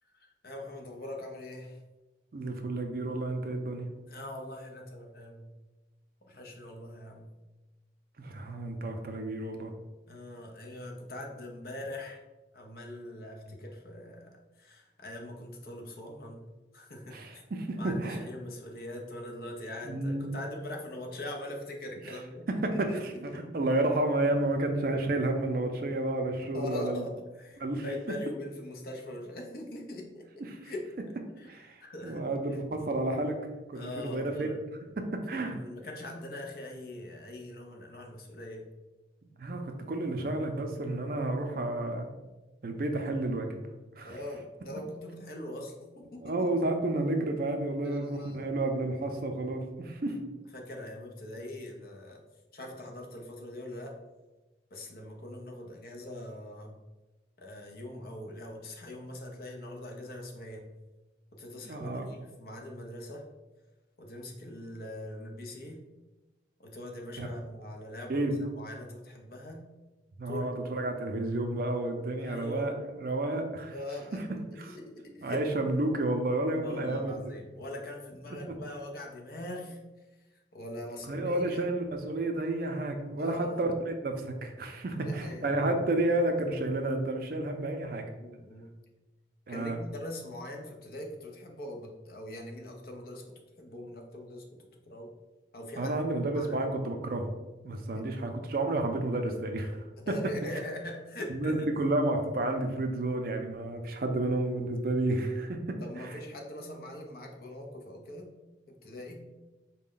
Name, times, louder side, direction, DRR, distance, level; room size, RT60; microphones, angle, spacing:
voice 1, 0.1-1.8 4.1-5.5 6.3-7.3 10.1-12.2 12.5-14.3 14.6-16.4 16.7-17.2 17.8-22.5 22.9-23.5 26.5-30.2 30.6-30.9 31.4-32.2 33.7-34.6 35.3-38.7 44.0-46.6 47.8-48.5 50.0-50.2 50.5-52.2 52.5-54.0 54.7-56.8 57.4-60.7 61.3-63.2 64.0-65.8 66.6-68.3 68.6-69.6 70.3-70.8 72.2-72.7 73.7-75.4 76.6-79.8 80.5-81.7 83.2-83.6 85.0-85.7 88.2-88.7 89.5-94.4 94.9-95.1 95.5-95.9 96.3-96.6 97.9-98.0 100.0-101.7 105.8-108.3 108.8-109.2, left 1 dB, 55° left, 1 dB, 0.6 m, -42 dB
voice 2, 2.3-3.9 8.2-9.7 17.1-18.2 19.8-20.3 22.1-22.2 22.5-27.0 27.6-27.8 30.5-30.7 31.5-33.4 33.7-34.5 35.0-35.6 39.4-42.1 42.6-43.5 44.0-44.2 46.2-50.2 61.6-62.1 67.2-67.3 68.1-68.4 70.2-73.7 74.1-74.2 74.6-74.8 75.2-77.1 78.5-78.6 81.1-88.1 89.5-89.8 95.8-97.3 97.6-99.8 100.1-100.2 101.3-106.2, right 2 dB, 50° right, 5 dB, 0.4 m, -31 dB
4.1 x 2.2 x 3.7 m, 1.1 s
head